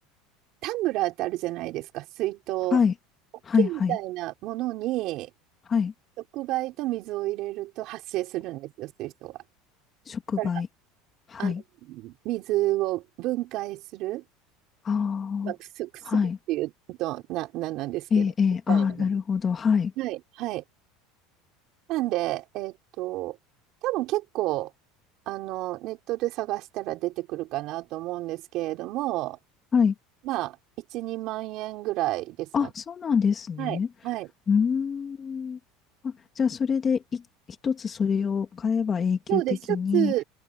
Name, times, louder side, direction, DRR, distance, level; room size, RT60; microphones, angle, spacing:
voice 1, 0.6-2.8 3.6-5.3 6.3-9.4 10.4-10.5 11.4-11.6 11.9-14.2 15.4-18.3 18.7-19.1 20.0-20.6 21.9-23.4 23.8-24.7 25.3-29.4 30.2-30.6 30.9-32.7 33.6-34.3 39.3-40.2, right 17 dB, 55° right, 4.6 m, -30 dB
voice 2, 3.4-4.0 5.7-5.9 10.1-10.7 11.3-11.6 14.8-15.5 16.1-16.4 18.1-19.9 29.7-29.9 32.5-33.9 34.5-35.6 36.0-37.2 37.6-39.4 39.7-40.1, left 6 dB, 25° left, 2.5 m, -25 dB
supercardioid pair, 135°, 0 cm